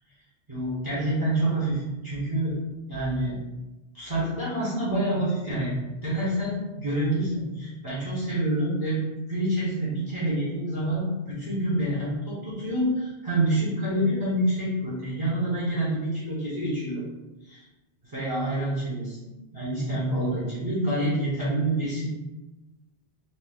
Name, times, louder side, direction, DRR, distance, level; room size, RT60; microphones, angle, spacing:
voice 1, 0.5-2.6 2.9-3.4 3.9-5.7 6.0-9.0 9.3-17.0 17.5-17.6 18.0-19.2 19.5-22.1, right 1 dB, 25° right, -7 dB, 0.5 m, -27 dB
2.7 x 2.0 x 3.3 m, 1.1 s
omnidirectional pair, 1.2 m